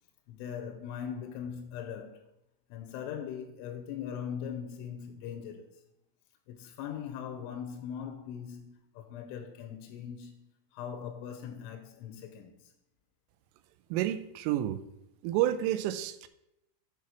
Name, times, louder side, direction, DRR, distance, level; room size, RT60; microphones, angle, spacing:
voice 1, 0.3-2.2 2.7-5.8 6.5-10.4 10.7-12.7, left 8 dB, 85° left, 3.0 m, -40 dB
voice 2, 13.9-14.8 15.2-16.3, right 13 dB, 85° right, 3.0 m, -29 dB
8.3 x 4.2 x 6.2 m
omnidirectional pair, 5.9 m